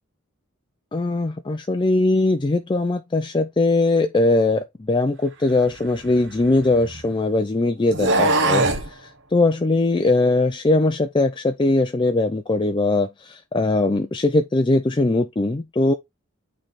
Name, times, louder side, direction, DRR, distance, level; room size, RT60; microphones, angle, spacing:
voice 1, 0.9-15.9, left 2 dB, 20° left, 0.4 m, -20 dB
sound 1, 5.6-7.1 7.9-8.9, right 2 dB, 60° right, 1.1 m, -22 dB
8.8 x 3.4 x 4.0 m
head